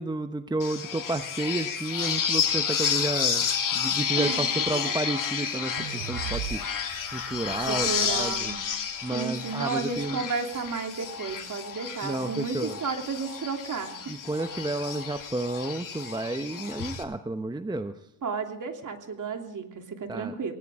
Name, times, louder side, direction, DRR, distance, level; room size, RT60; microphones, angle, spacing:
voice 1, 0.0-5.8 6.1-6.6 7.1-8.5 9.0-10.2 12.0-12.8 14.1-17.9 20.1-20.3, right 2 dB, 10° right, 9 dB, 1.0 m, -31 dB
sound 1, 0.6-17.0, left 7 dB, 50° left, 2.9 m, -31 dB
voice 2, 4.2-4.9 5.4-5.6 7.6-8.6 9.1-14.1 18.2-20.5, right 5 dB, 45° right, 4 dB, 3.1 m, -33 dB
sound 2, 5.8-9.0, right 10 dB, 80° right, 1.3 m, -40 dB
19.5 x 18.5 x 3.7 m, 0.81 s
supercardioid pair, 60°, 42 cm